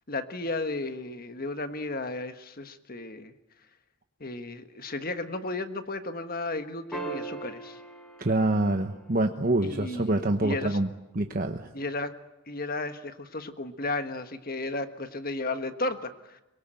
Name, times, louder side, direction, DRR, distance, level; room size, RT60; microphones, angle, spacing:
voice 1, 0.1-3.3 4.2-7.8 9.6-10.8 11.7-12.1 12.5-16.4, left 2 dB, 45° left, 9 dB, 1.5 m, -34 dB
sound 1, 6.9-9.5 11.7-11.8, right 3 dB, 5° left, 4.5 m, -39 dB
voice 2, 8.2-10.9 11.1-11.7, right 2 dB, 45° right, 6 dB, 1.1 m, -26 dB
24.0 x 22.5 x 9.1 m, 0.98 s
head